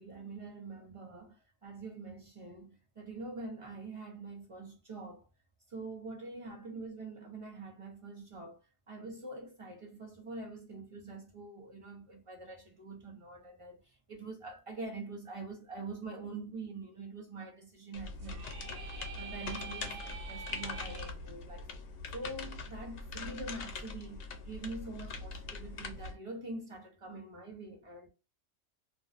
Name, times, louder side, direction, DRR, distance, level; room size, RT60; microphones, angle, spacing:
voice 1, 0.0-5.3 5.7-8.6 8.9-21.7 22.1-28.1, right 3 dB, 40° right, 0.5 m, -45 dB
sound 1, 17.9-26.1, left 3 dB, 90° left, 0.9 m, -42 dB
sound 2, 18.2-21.1, right 5 dB, 70° right, 1.0 m, -46 dB
2.5 x 2.1 x 2.3 m
omnidirectional pair, 1.1 m